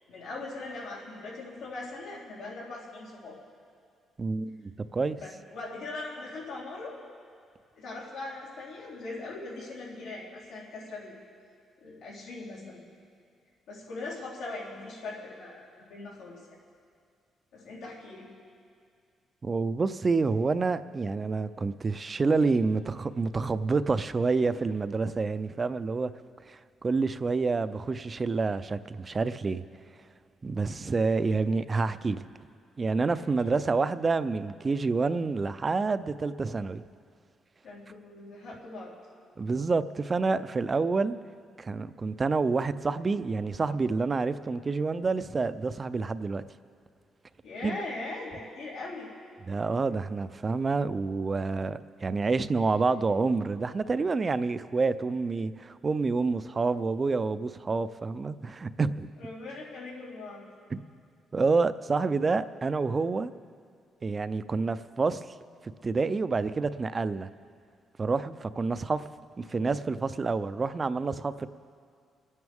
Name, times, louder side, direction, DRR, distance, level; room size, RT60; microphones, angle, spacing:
voice 1, 0.1-3.4 5.2-7.0 7.8-11.1 11.8-12.8 13.7-16.4 17.5-18.3 31.2-31.4 33.2-33.5 37.6-38.9 47.4-49.1 59.2-60.5, left 2 dB, 90° left, -6 dB, 3.7 m, -40 dB
voice 2, 4.2-5.2 19.4-26.1 26.5-29.6 30.4-32.2 32.8-36.8 39.4-41.2 41.6-46.4 47.6-47.8 49.5-59.1 60.7-60.8 61.3-63.3 64.0-65.2 65.8-67.3 68.0-69.1 69.4-71.5, right 4 dB, 30° right, 14 dB, 0.5 m, -28 dB
26.0 x 9.6 x 3.6 m, 2.3 s
cardioid pair, 90°, 0 cm